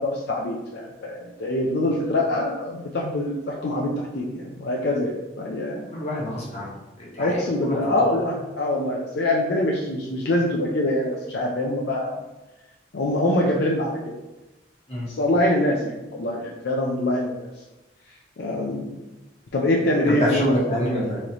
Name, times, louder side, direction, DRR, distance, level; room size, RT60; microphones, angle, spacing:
voice 1, 0.0-5.9 7.2-12.2 12.9-14.0 15.1-17.5 18.4-18.9 19.5-20.9, left 1 dB, 65° left, -2 dB, 0.5 m, -24 dB
voice 2, 5.9-6.7 7.0-8.0 14.9-15.1 20.0-21.2, equal, 35° left, -5 dB, 1.2 m, -27 dB
3.9 x 3.1 x 2.9 m, 1.1 s
head